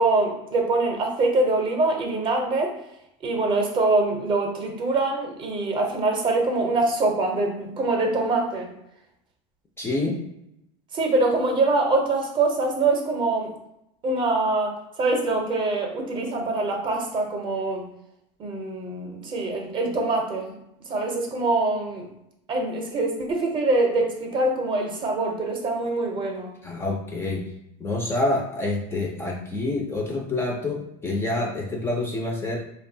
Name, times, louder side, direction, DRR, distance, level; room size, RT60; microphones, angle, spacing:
voice 1, 0.0-2.7 3.2-8.7 10.9-13.5 14.0-17.9 18.4-20.5 20.9-22.1 22.5-26.5, right 2 dB, 30° right, 2 dB, 0.6 m, -24 dB
voice 2, 9.8-10.2 26.6-27.4 27.8-32.6, left 2 dB, 15° left, 0 dB, 0.4 m, -27 dB
2.7 x 2.2 x 2.6 m, 0.82 s
supercardioid pair, 120°, 16 cm